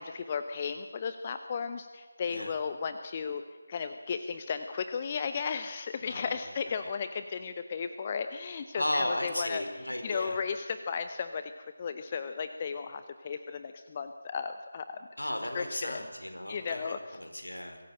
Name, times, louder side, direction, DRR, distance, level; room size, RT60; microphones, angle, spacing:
voice 1, 0.0-3.4 3.7-9.6 10.0-15.1 15.5-16.0 16.5-17.0, left 6 dB, 25° left, 9 dB, 0.8 m, -35 dB
voice 2, 6.0-6.4 8.8-10.4 15.2-17.8, left 1 dB, 75° left, 5 dB, 4.3 m, -35 dB
23.5 x 15.0 x 8.9 m, 1.3 s
figure-of-eight pair, 160°, 0 cm